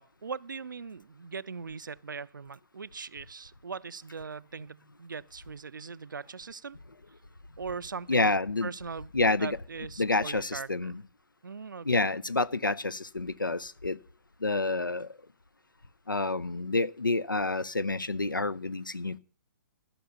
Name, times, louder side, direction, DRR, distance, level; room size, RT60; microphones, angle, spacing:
voice 1, 0.0-6.8 7.6-8.3 8.6-9.1 9.4-10.9 11.4-11.9, right 5 dB, 75° right, 0.5 m, -40 dB
voice 2, 8.1-8.7 9.1-9.6 10.0-11.0 11.8-14.0 14.4-15.1 16.1-19.2, left 3 dB, 90° left, 0.6 m, -28 dB
14.0 x 6.0 x 6.6 m
figure-of-eight pair, 125°, 11 cm